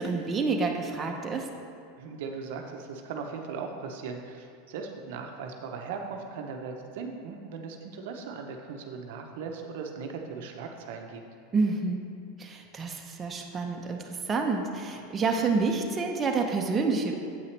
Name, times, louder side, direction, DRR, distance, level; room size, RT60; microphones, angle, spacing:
voice 1, 0.0-1.5 11.5-12.0 12.4-17.1, right 4 dB, 25° right, 2 dB, 0.7 m, -28 dB
voice 2, 2.0-11.2, right 5 dB, 70° right, 3 dB, 0.6 m, -38 dB
8.0 x 5.6 x 3.2 m, 2.4 s
supercardioid pair, 115°, 0 cm